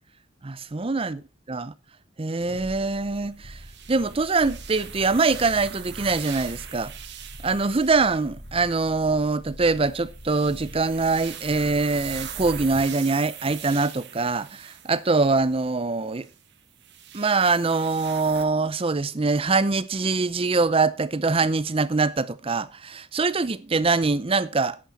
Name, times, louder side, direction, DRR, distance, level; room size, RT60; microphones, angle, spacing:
voice 1, 0.4-1.2 1.5-1.7 2.2-3.6 3.9-6.9 7.4-16.3 17.1-24.8, right 3 dB, 25° right, 0.6 m, -23 dB
sound 1, 2.3-13.0 13.4-13.5, equal, 70° left, 4.4 m, -43 dB
sound 2, 3.5-8.9 9.6-15.4 16.2-18.4, right 10 dB, 55° right, 1.3 m, -42 dB
11.0 x 8.7 x 4.2 m
head